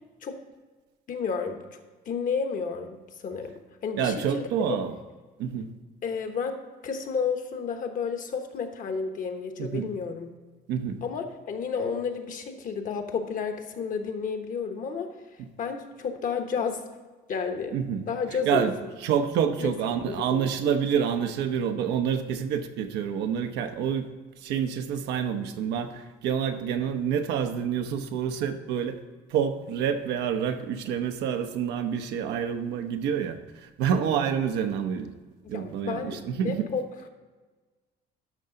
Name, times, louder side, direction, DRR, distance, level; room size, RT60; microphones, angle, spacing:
voice 1, 1.1-1.8 2.1-3.5 3.8-4.8 6.0-10.3 11.0-15.1 15.6-16.8 17.3-17.8 18.1-18.9 19.6-19.7 20.0-20.7 35.4-36.2 36.4-36.8, left 5 dB, 55° left, 6 dB, 1.1 m, -31 dB
voice 2, 4.0-5.0 5.4-5.7 9.6-9.9 10.7-11.0 15.4-15.5 17.7-24.1 24.4-29.0 29.3-33.4 33.8-35.1 35.5-36.7, right 8 dB, 90° right, 7 dB, 0.8 m, -28 dB
12.0 x 5.6 x 3.9 m, 1.3 s
cardioid pair, 110°, 17 cm